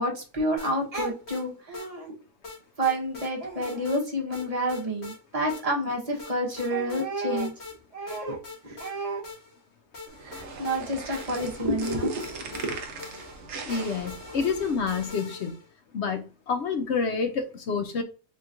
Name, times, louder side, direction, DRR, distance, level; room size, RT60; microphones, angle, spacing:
voice 1, 0.0-2.1 2.8-7.5 7.9-8.4 8.6-9.2 10.2-12.7, right 1 dB, 25° right, 1.0 m, -29 dB
sound 1, 0.6-1.4 1.7-1.9 2.4-3.3 3.6-4.0 4.3-5.2 5.5-5.6 6.2-7.0 7.4-7.8 8.1-9.6 9.9-15.7, left 3 dB, 45° left, 1.5 m, -43 dB
sound 2, 10.1-15.1, right 4 dB, 55° right, 0.9 m, -41 dB
voice 2, 13.6-15.6 15.9-18.0, left 5 dB, 65° left, 0.7 m, -28 dB
4.3 x 3.0 x 2.5 m
omnidirectional pair, 1.7 m